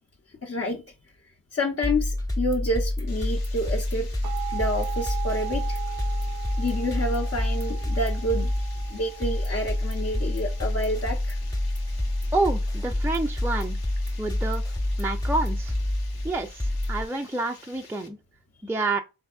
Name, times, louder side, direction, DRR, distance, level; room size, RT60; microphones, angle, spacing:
voice 1, 0.4-0.8 1.5-4.1 4.5-5.8 6.6-8.5 8.9-11.4, left 1 dB, 35° left, 0.7 m, -29 dB
sound 1, 1.8-17.1, left 1 dB, 10° left, 0.9 m, -28 dB
Water, 3.1-18.1, left 5 dB, 90° left, 0.8 m, -50 dB
sound 2, 4.2-15.7, right 16 dB, 65° right, 0.5 m, -40 dB
voice 2, 12.3-13.8 14.2-14.6 15.0-15.7 16.2-18.2 18.6-19.0, right 2 dB, 5° right, 0.4 m, -28 dB
3.4 x 3.4 x 2.3 m
cardioid pair, 55°, 36 cm